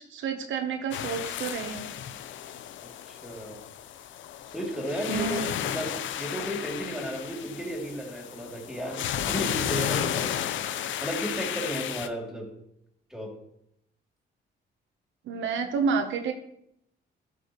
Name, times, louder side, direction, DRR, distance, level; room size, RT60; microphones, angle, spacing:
voice 1, 0.0-1.9 5.1-5.5 15.3-16.3, right 5 dB, 75° right, 5 dB, 0.9 m, -29 dB
sound 1, 0.9-12.1, left 10 dB, 75° left, 0.6 m, -33 dB
voice 2, 3.1-3.6 4.5-10.4 11.0-12.5 13.1-13.3, equal, ahead, 0 dB, 2.7 m, -34 dB
12.0 x 5.4 x 3.1 m, 0.77 s
cardioid pair, 90°, 20 cm